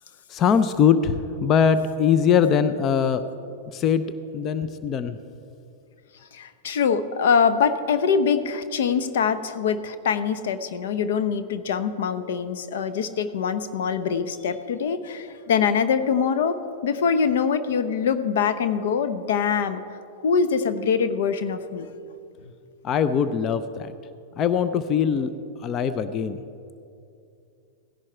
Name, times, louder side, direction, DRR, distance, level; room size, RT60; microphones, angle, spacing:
voice 1, 0.3-3.2 3.7-4.1 4.3-5.2 22.8-23.9 24.4-25.3 25.6-26.4, left 7 dB, 35° left, 12 dB, 0.6 m, -21 dB
voice 2, 6.3-19.8 20.2-21.9, left 6 dB, 70° left, 11 dB, 0.8 m, -24 dB
17.5 x 10.5 x 4.5 m, 2.5 s
hypercardioid pair, 105°, 0 cm